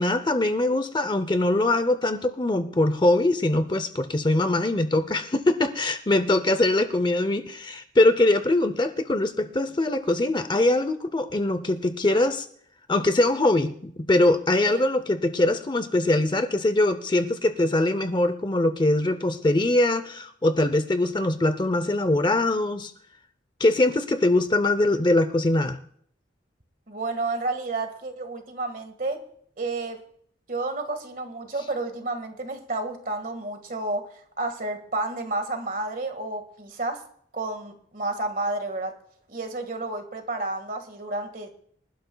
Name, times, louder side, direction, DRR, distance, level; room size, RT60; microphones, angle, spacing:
voice 1, 0.0-12.5 12.9-22.9 23.6-25.8, left 2 dB, 25° left, 10 dB, 0.6 m, -22 dB
voice 2, 26.9-29.2 29.6-30.0 30.5-34.1 34.4-37.0 37.3-38.9 39.3-41.5, right 2 dB, 45° right, 6 dB, 1.7 m, -31 dB
25.0 x 12.0 x 2.3 m, 0.63 s
head